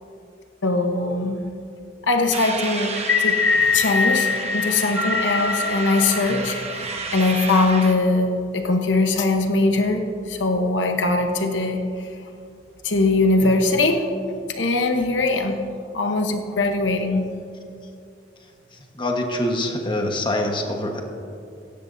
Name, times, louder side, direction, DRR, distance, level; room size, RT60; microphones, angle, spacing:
voice 1, 0.6-1.4 2.1-3.4 3.7-11.8 12.8-14.0 14.5-15.6 15.9-17.3, left 2 dB, 85° left, 4 dB, 1.0 m, -21 dB
sound 1, 2.3-7.9, right 4 dB, 35° right, 1.2 m, -32 dB
sound 2, 3.0-7.3, left 4 dB, 70° left, 1.3 m, -23 dB
voice 2, 19.0-21.0, left 1 dB, 25° left, 2 dB, 1.3 m, -24 dB
17.0 x 14.5 x 2.7 m, 2.5 s
head